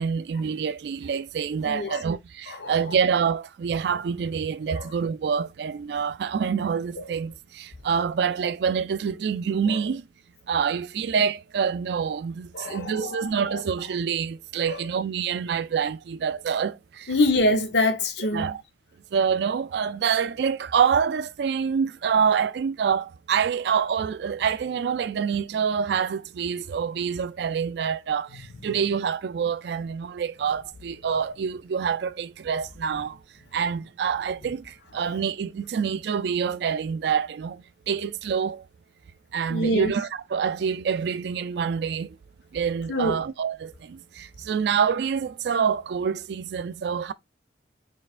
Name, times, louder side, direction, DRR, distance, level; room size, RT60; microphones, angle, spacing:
voice 1, 0.0-10.0 10.5-17.1 18.3-18.6 19.1-33.2 33.5-38.6 39.3-42.2 42.5-47.1, right 7 dB, 65° right, 0.3 m, -26 dB
voice 2, 1.6-2.0 2.5-2.8 4.7-4.8 7.0-7.1 9.7-9.8 12.5-13.6 14.6-14.9 17.1-18.6 32.9-33.0 39.5-39.9 42.9-43.2, left 1 dB, 70° left, 0.8 m, -25 dB
4.3 x 3.2 x 2.4 m
head